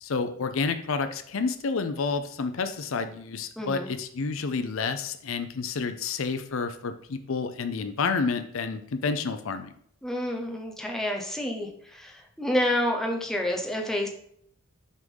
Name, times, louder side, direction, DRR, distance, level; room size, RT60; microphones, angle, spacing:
voice 1, 0.0-9.7, left 4 dB, 65° left, 9 dB, 0.5 m, -29 dB
voice 2, 3.6-3.9 10.0-14.1, left 1 dB, ahead, 1 dB, 0.8 m, -29 dB
6.3 x 3.7 x 5.4 m, 0.65 s
head